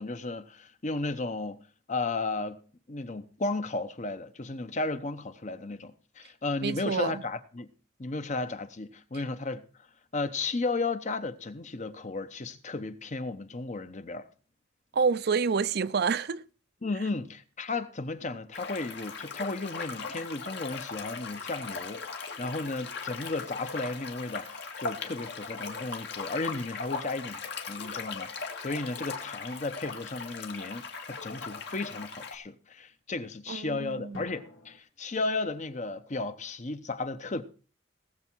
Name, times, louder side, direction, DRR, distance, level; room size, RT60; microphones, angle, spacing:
voice 1, 0.0-1.6 1.9-2.6 2.9-7.7 8.0-9.6 10.1-14.3 16.8-27.4 27.7-37.4, left 3 dB, 40° left, 0.9 m, -34 dB
voice 2, 6.6-7.2 14.9-16.4 33.5-34.2, right 5 dB, 60° right, 0.5 m, -28 dB
sound 1, 18.5-32.3, left 4 dB, 65° left, 2.1 m, -39 dB
sound 2, 25.0-27.1 34.1-34.8, left 2 dB, 85° left, 2.2 m, -50 dB
18.5 x 7.3 x 4.6 m
head